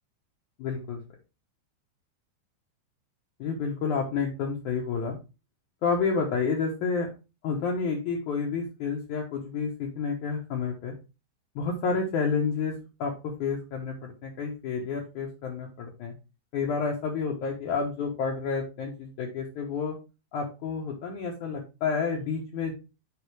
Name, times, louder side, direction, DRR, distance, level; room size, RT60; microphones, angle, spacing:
voice 1, 0.6-1.0 3.4-5.2 5.8-7.1 7.4-10.9 11.6-16.1 16.5-20.0 20.3-22.7, left 5 dB, 65° left, -1 dB, 2.1 m, -30 dB
8.4 x 5.2 x 3.2 m, 0.29 s
omnidirectional pair, 4.4 m